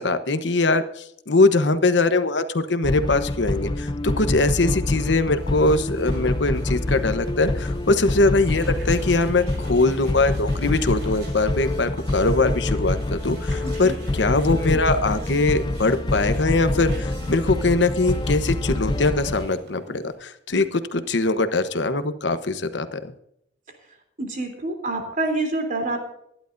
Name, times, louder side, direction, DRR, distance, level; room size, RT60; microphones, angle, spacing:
voice 1, 0.0-23.0, left 3 dB, 80° left, 10 dB, 1.0 m, -22 dB
sound 1, 2.8-19.5, left 1 dB, 25° left, 0.5 m, -26 dB
sound 2, 4.2-20.1, right 1 dB, 65° right, 5.4 m, -46 dB
voice 2, 13.6-14.0 24.2-26.0, right 2 dB, 50° right, 3 dB, 3.3 m, -27 dB
22.0 x 11.0 x 2.6 m, 0.74 s
head